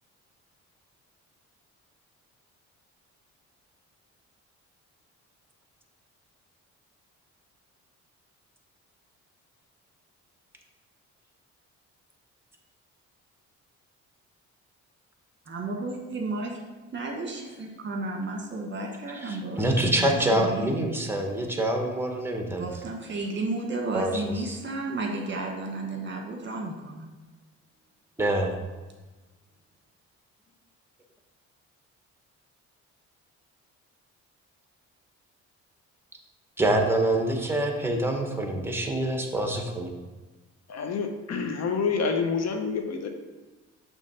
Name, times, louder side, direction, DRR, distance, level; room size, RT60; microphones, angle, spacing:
voice 1, 15.4-16.6 16.9-20.8 22.6-27.1, right 2 dB, 40° right, 1 dB, 1.3 m, -33 dB
voice 2, 19.2-22.7 23.9-24.6 28.2-28.6 36.6-39.9, right 1 dB, 5° right, 3 dB, 1.1 m, -26 dB
voice 3, 40.7-43.1, left 5 dB, 60° left, 5 dB, 0.8 m, -28 dB
6.5 x 3.1 x 5.5 m, 1.2 s
cardioid pair, 90°, 30 cm